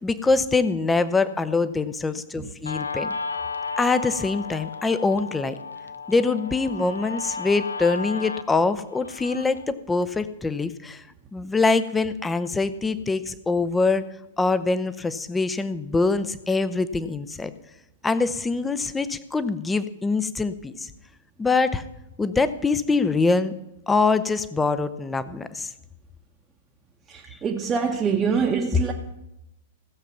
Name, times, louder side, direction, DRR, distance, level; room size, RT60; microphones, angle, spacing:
voice 1, 0.0-3.1 3.8-5.6 6.1-11.0 11.3-14.1 14.4-17.5 18.0-20.9 21.4-21.8 22.2-23.5 23.9-25.7, left 3 dB, 10° left, 0.7 m, -24 dB
Guitar, 2.7-9.6, left 4 dB, 80° left, 0.6 m, -34 dB
voice 2, 27.1-28.9, right 6 dB, 20° right, 1.0 m, -24 dB
15.5 x 7.1 x 5.9 m
figure-of-eight pair, 100°, 0 cm